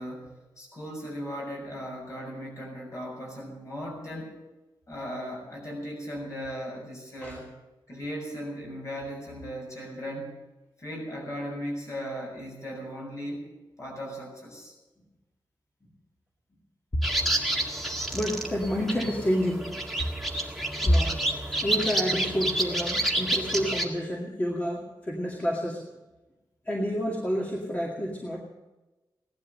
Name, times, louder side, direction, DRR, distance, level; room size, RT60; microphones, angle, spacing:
voice 1, 0.0-4.4 4.9-7.5 7.9-10.4 10.8-13.5 13.8-14.7, equal, 40° left, 0 dB, 6.6 m, -37 dB
sound 1, 17.0-23.8, right 1 dB, ahead, 1.9 m, -29 dB
voice 2, 18.1-19.7 20.5-20.6 20.8-21.2 21.5-25.8 26.7-28.4, equal, 20° left, -2 dB, 2.2 m, -28 dB
17.5 x 12.0 x 6.6 m, 1.1 s
wide cardioid pair, 175°, 8 cm